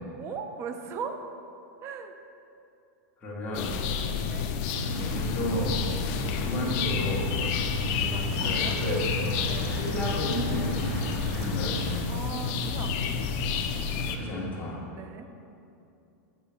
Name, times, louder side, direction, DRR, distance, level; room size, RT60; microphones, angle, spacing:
voice 1, 0.1-1.2 1.8-2.1 4.1-4.5 8.0-8.8 9.4-9.8 12.1-13.3 14.9-15.3, right 6 dB, 30° right, 6 dB, 0.5 m, -39 dB
voice 2, 3.2-3.7 4.9-5.8 6.2-7.2 8.4-9.0 9.7-10.9 11.3-11.8 13.9-14.8, equal, 15° left, -6 dB, 1.8 m, -33 dB
sound 1, 3.5-14.2, left 6 dB, 45° left, 0.6 m, -30 dB
sound 2, 4.7-12.0, left 1 dB, 60° right, 1.9 m, -34 dB
8.3 x 6.6 x 3.6 m, 2.7 s
supercardioid pair, 150°, 9 cm